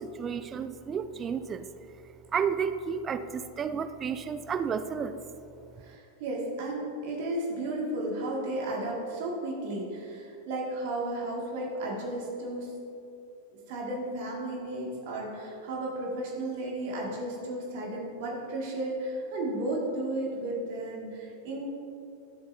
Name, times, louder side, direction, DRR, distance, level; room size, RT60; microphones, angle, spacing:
voice 1, 0.0-1.7 2.3-5.2, right 6 dB, 25° right, 11 dB, 0.3 m, -32 dB
voice 2, 5.8-12.7 13.7-21.7, right 1 dB, 50° right, -2 dB, 2.0 m, -34 dB
13.0 x 7.3 x 2.7 m, 2.6 s
figure-of-eight pair, 90°, 0 cm